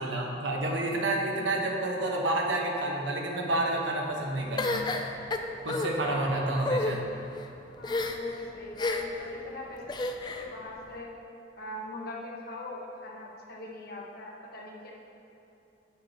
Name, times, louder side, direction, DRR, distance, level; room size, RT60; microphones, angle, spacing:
voice 1, 0.0-4.9 5.6-7.0, right 1 dB, 75° right, 0 dB, 1.2 m, -29 dB
sound 1, 4.6-5.9 6.6-6.9 7.8-8.3 8.8-9.2 9.9-10.5, left 2 dB, 25° left, 0.4 m, -30 dB
voice 2, 7.8-10.1 10.4-11.1 11.6-14.9, left 1 dB, 55° left, -3 dB, 1.3 m, -41 dB
9.8 x 8.6 x 2.9 m, 2.8 s
head